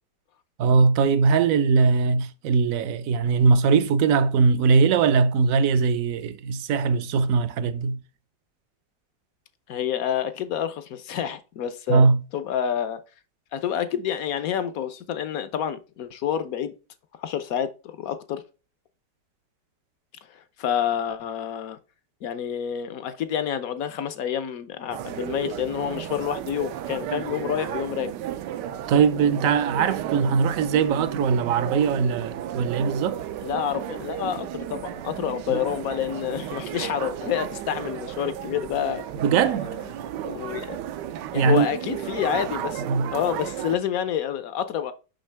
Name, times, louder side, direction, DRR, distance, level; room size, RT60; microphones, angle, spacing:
voice 1, 0.6-8.0 11.9-12.2 28.9-33.2 39.2-39.7 41.3-41.7 42.9-43.1, right 5 dB, 65° right, 0.9 m, -20 dB
voice 2, 9.7-12.1 12.3-13.0 13.5-16.7 17.2-18.4 20.3-21.8 22.2-28.1 33.4-39.1 39.4-39.6 39.9-40.8 41.3-42.8 43.1-44.9, left 9 dB, 65° left, 1.0 m, -28 dB
sound 1, 24.9-43.8, right 11 dB, 80° right, 1.3 m, -34 dB
6.4 x 5.7 x 3.3 m
omnidirectional pair, 1.9 m